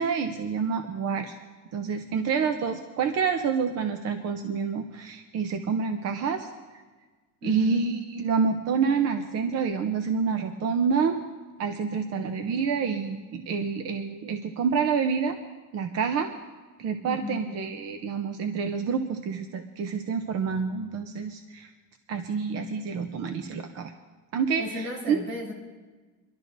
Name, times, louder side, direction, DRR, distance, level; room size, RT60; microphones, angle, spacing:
voice 1, 0.0-1.3 1.7-6.5 7.4-11.1 11.6-15.4 15.7-16.3 16.8-21.7 22.1-23.9 24.3-25.2, right 6 dB, 45° right, 7 dB, 0.6 m, -28 dB
voice 2, 7.4-7.9 17.0-17.5 24.6-25.5, left 2 dB, 70° right, -2 dB, 3.9 m, -35 dB
24.5 x 12.0 x 2.6 m, 1.3 s
cardioid pair, 170°, 36 cm